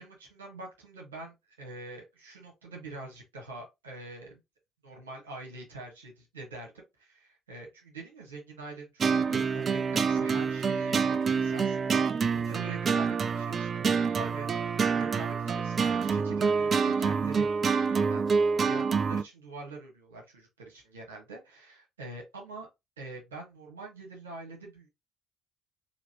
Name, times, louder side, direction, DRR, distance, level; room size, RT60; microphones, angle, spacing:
voice 1, 0.0-4.4 4.8-22.7 23.0-24.9, right 2 dB, 80° right, 1.5 m, -45 dB
sound 1, 9.0-19.2, right 5 dB, 40° right, 0.3 m, -27 dB
3.9 x 3.0 x 3.0 m
figure-of-eight pair, 50°, 0 cm